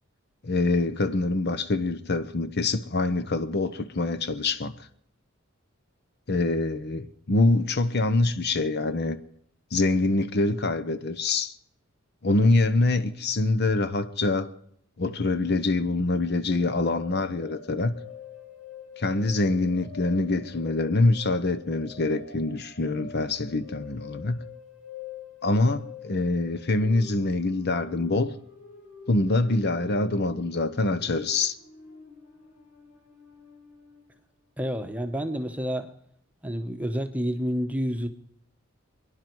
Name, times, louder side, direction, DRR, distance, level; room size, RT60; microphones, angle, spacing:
voice 1, 0.4-4.8 6.3-9.2 9.7-11.5 12.2-14.5 15.0-17.9 19.0-24.4 25.4-28.3 29.1-31.6, left 2 dB, 50° left, 0.8 m, -25 dB
sound 1, 16.8-34.2, left 7 dB, 80° left, 3.7 m, -46 dB
voice 2, 34.6-35.9 36.4-38.1, equal, 5° right, 1.0 m, -29 dB
28.5 x 11.0 x 4.6 m
head